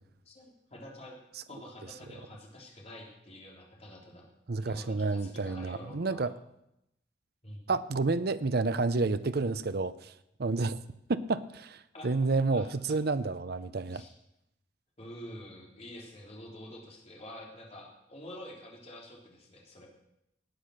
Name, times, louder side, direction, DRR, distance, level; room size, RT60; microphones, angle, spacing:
voice 1, 0.3-1.2 1.5-4.3 4.6-6.3 7.4-7.7 11.9-12.7 13.9-14.1 15.0-19.9, left 1 dB, 35° left, -1 dB, 3.5 m, -47 dB
voice 2, 4.5-6.3 7.7-10.1 10.4-10.8 11.1-11.8 12.0-14.0, right 3 dB, 60° right, 13 dB, 0.7 m, -29 dB
18.0 x 8.7 x 6.5 m, 0.82 s
head